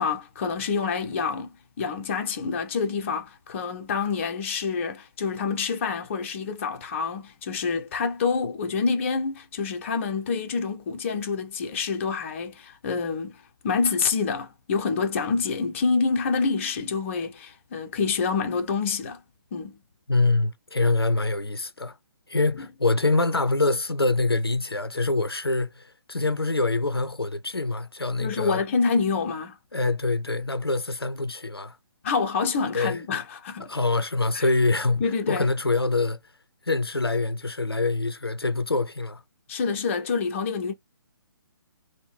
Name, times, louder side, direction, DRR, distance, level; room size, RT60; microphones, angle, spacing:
voice 1, 0.0-13.4 13.6-19.2 19.5-19.8 22.6-22.7 28.2-29.6 32.0-33.7 34.3-34.5 35.0-35.5 39.5-40.7, left 5 dB, 35° left, 0.6 m, -27 dB
voice 2, 20.1-22.0 22.3-28.6 29.7-31.8 32.7-33.0 33.6-36.2 36.7-39.2, left 3 dB, 85° left, 0.6 m, -25 dB
3.6 x 2.2 x 3.2 m
figure-of-eight pair, 135°, 12 cm